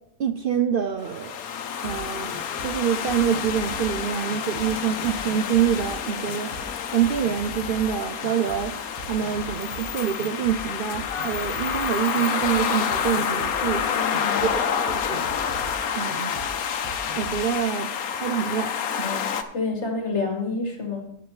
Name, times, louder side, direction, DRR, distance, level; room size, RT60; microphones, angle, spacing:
voice 1, 0.2-1.4 1.8-2.4 2.6-6.5 6.9-8.8 9.0-13.8 14.4-15.3 16.0-16.4 17.2-17.9 18.1-19.2, right 8 dB, 65° right, 8 dB, 0.5 m, -26 dB
sound 1, 1.0-19.4, left 7 dB, 85° left, 1.2 m, -28 dB
sound 2, 1.8-1.9 2.3-2.7 3.1-3.9 4.3-4.7 5.0-5.9 6.3-6.6 7.0-7.8 8.2-8.6 9.0-9.8 10.2-10.6 10.9-11.8 12.2-12.5 12.9-13.7 14.1-14.5 14.9-15.7 16.1-16.5 16.8-17.4, right 4 dB, 30° right, 1.4 m, -41 dB
voice 2, 13.8-14.4 19.0-19.3 19.5-21.0, left 3 dB, 55° left, 2 dB, 1.6 m, -29 dB
16.5 x 6.8 x 3.1 m, 0.77 s
omnidirectional pair, 1.5 m